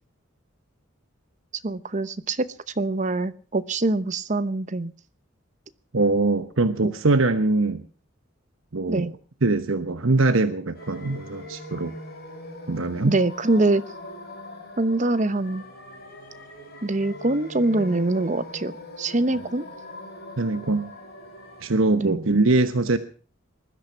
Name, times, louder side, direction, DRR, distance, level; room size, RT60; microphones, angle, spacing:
voice 1, 1.6-2.4 2.8-4.9 8.9-9.1 13.0-13.8 14.8-15.6 16.8-18.7 19.0-19.6 22.0-22.2, right 2 dB, 35° right, 13 dB, 0.9 m, -24 dB
voice 2, 5.9-7.8 8.7-9.1 9.4-11.9 12.7-13.2 20.4-20.9 21.6-23.0, right 3 dB, 80° right, 10 dB, 1.1 m, -22 dB
sound 1, 10.7-21.7, left 1 dB, 50° left, 5.7 m, -41 dB
20.0 x 12.5 x 5.7 m, 0.40 s
head